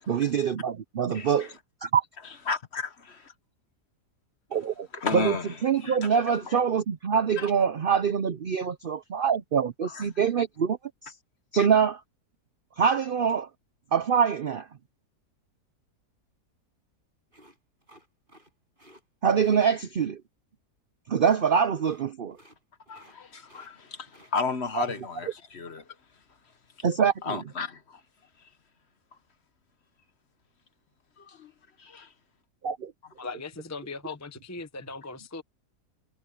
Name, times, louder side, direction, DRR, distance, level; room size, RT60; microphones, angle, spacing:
voice 1, 0.1-1.5 1.8-2.1 4.5-4.9 5.1-5.3 5.6-10.8 11.0-11.1 11.5-12.0 12.8-13.5 13.9-14.7 19.2-20.2 21.1-22.4 26.8-27.4 32.6-32.9, right 7 dB, 65° right, 0.5 m, -24 dB
voice 2, 1.1-1.5 2.5-3.3 4.9-6.6 7.4-7.5 9.8-10.0 11.5-11.7 22.9-25.8 27.2-28.0 31.2-31.5 31.8-32.1, left 4 dB, 45° left, 1.3 m, -34 dB
sound 1, 17.3-18.5 18.8-19.0 19.4-19.6 21.2-21.5 21.8-22.0 22.3-22.6 22.9-23.2 23.4-24.3 24.6-25.0, right 1 dB, 30° right, 8.2 m, -56 dB
voice 3, 33.2-35.4, left 3 dB, 15° left, 0.5 m, -39 dB
omnidirectional pair, 1.7 m